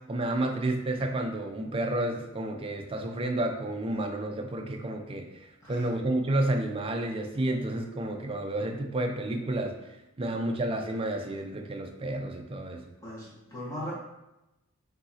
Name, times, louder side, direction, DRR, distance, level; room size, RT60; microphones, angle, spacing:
voice 1, 0.0-12.9, right 1 dB, 25° right, 4 dB, 0.3 m, -31 dB
voice 2, 13.0-13.9, left 1 dB, 15° left, -7 dB, 1.2 m, -39 dB
5.4 x 2.8 x 2.8 m, 0.93 s
head